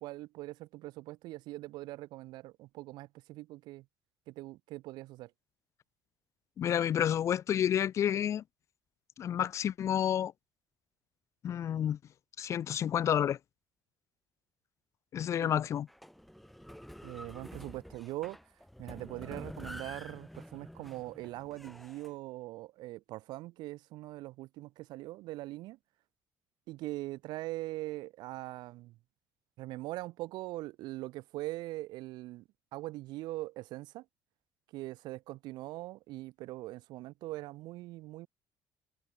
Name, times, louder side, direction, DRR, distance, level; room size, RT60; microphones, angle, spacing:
voice 1, 0.0-3.8 4.3-5.3 15.4-15.6 17.0-18.4 18.8-25.8 26.7-29.0 29.6-32.4 32.7-34.0 34.7-38.3, right 18 dB, 85° right, 1.4 m, -42 dB
voice 2, 6.6-8.4 9.2-10.3 11.4-12.0 12.4-13.4 15.1-15.9, left 9 dB, 45° left, 0.6 m, -30 dB
sound 1, 15.9-22.1, equal, ahead, 2.4 m, -48 dB
cardioid pair, 135°, 7 cm